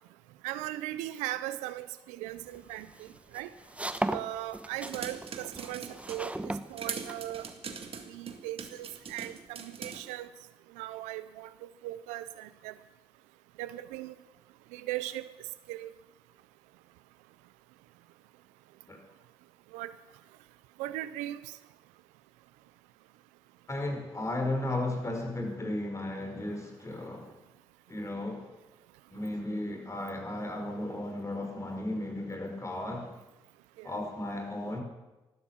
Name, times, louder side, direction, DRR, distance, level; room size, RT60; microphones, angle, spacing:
voice 1, 0.4-3.5 4.1-7.5 8.1-10.3 10.7-12.7 13.6-14.1 14.7-15.3 15.7-15.9 19.7-19.9 20.8-21.6 33.8-33.9, right 15 dB, 85° right, 15 dB, 0.6 m, -38 dB
sound 1, 2.4-7.5, right 1 dB, 10° right, 1.2 m, -37 dB
sound 2, 4.9-6.3 6.8-10.0, right 5 dB, 50° right, 1.9 m, -41 dB
voice 2, 23.7-27.3 27.9-28.5 29.1-33.1 33.8-34.8, left 1 dB, 25° left, 4 dB, 5.0 m, -35 dB
15.0 x 12.0 x 7.3 m, 1.0 s
hypercardioid pair, 50°, 12 cm